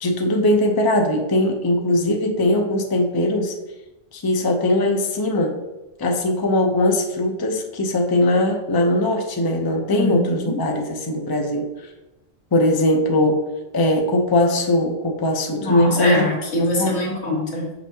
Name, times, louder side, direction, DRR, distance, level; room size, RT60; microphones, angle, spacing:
voice 1, 0.0-3.5 4.1-5.5 6.0-11.9 12.5-13.4 13.7-16.3 16.6-16.9, left 1 dB, 25° left, 2 dB, 0.5 m, -20 dB
voice 2, 9.9-10.6 15.6-17.7, left 1 dB, 80° left, -2 dB, 1.9 m, -23 dB
6.2 x 5.9 x 2.7 m, 1.0 s
omnidirectional pair, 1.2 m